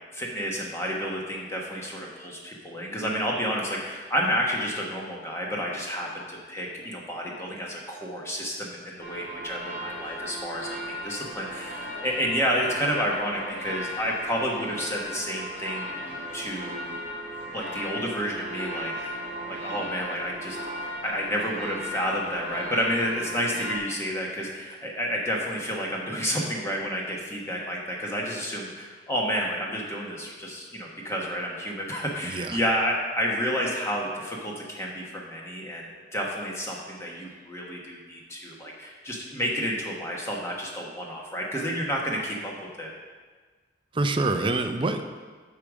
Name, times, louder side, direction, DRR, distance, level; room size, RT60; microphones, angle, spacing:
voice 1, 0.1-10.8 11.0-16.1 16.3-17.0 17.5-20.6 21.0-42.5 42.8-42.9, equal, 15° left, -2 dB, 1.1 m, -30 dB
sound 1, 9.0-23.8, equal, 70° left, 2.3 m, -36 dB
voice 2, 32.2-32.6 43.9-45.0, right 2 dB, 30° right, 7 dB, 0.5 m, -26 dB
8.6 x 4.9 x 6.2 m, 1.4 s
head